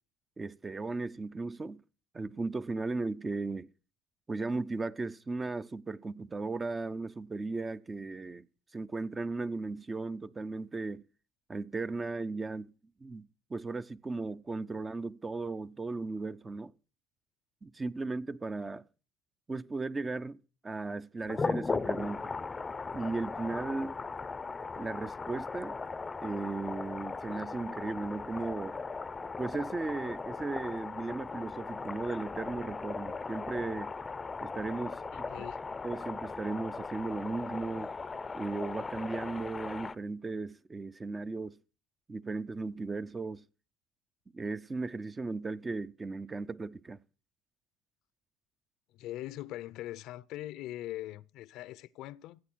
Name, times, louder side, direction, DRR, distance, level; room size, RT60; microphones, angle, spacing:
voice 1, 0.4-1.8 2.1-3.7 4.3-8.5 8.7-11.0 11.5-12.7 13.0-16.7 17.6-18.8 19.5-20.4 20.6-22.3 22.9-24.0 24.8-25.8 26.2-28.8 29.4-33.9 34.4-35.3 35.8-37.9 38.3-41.6 42.1-43.4 44.3-47.0, right 3 dB, 20° right, 0.6 m, -36 dB
sound 1, 21.3-40.0, left 4 dB, 20° left, 0.6 m, -38 dB
voice 2, 35.1-35.6 48.9-52.4, left 14 dB, 65° left, 0.6 m, -41 dB
15.5 x 8.4 x 6.1 m
supercardioid pair, 90°, 0 cm